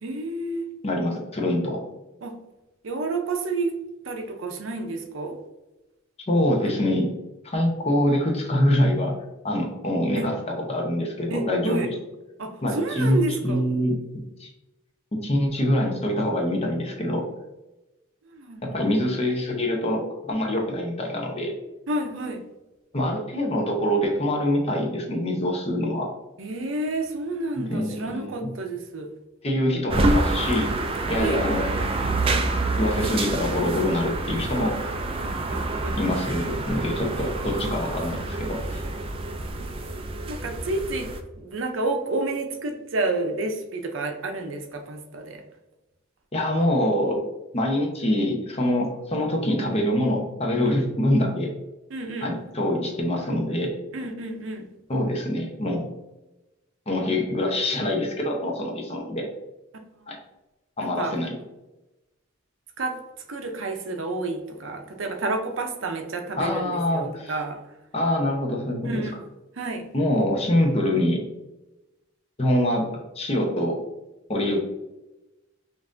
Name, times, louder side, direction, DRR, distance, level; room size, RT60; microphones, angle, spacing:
voice 1, 0.0-0.7 2.2-2.3 2.8-3.8 4.0-5.4 10.2-10.3 11.3-11.9 12.4-13.7 18.2-18.7 21.9-22.4 26.4-29.1 31.2-31.4 35.2-36.0 40.3-41.1 41.4-45.4 50.7-50.8 51.9-52.3 53.9-54.7 60.0-60.1 60.8-61.2 62.8-63.0 63.3-67.6 68.8-69.2 69.5-69.9, right 2 dB, 75° right, 4 dB, 0.6 m, -30 dB
voice 2, 0.8-1.8 6.3-7.1 7.4-9.1 9.4-11.9 12.6-14.0 14.4-14.5 15.2-17.3 18.6-21.5 22.9-26.1 27.6-28.5 29.4-30.7 31.1-31.6 32.8-34.8 35.9-38.8 46.3-47.2 47.5-51.5 52.2-53.7 54.9-55.9 56.9-59.3 60.1-60.2 60.8-61.3 66.4-67.3 67.9-69.0 69.9-71.2 72.4-72.9 73.2-73.8 74.3-74.6, left 1 dB, 30° left, 1 dB, 0.8 m, -24 dB
sound 1, 29.9-41.2, right 2 dB, 30° right, 0.3 m, -27 dB
5.5 x 2.6 x 2.5 m, 0.99 s
head